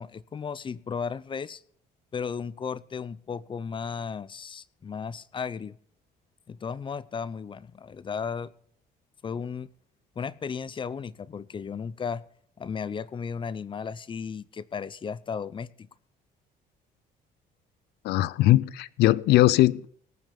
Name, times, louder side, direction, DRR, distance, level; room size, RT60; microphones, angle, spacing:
voice 1, 0.0-1.6 2.1-5.8 6.5-8.5 9.2-9.7 10.2-12.2 12.6-15.9, left 6 dB, 30° left, 0.6 m, -35 dB
voice 2, 18.0-19.9, left 16 dB, 80° left, 0.6 m, -20 dB
19.0 x 7.4 x 5.1 m
cardioid pair, 110°, 17 cm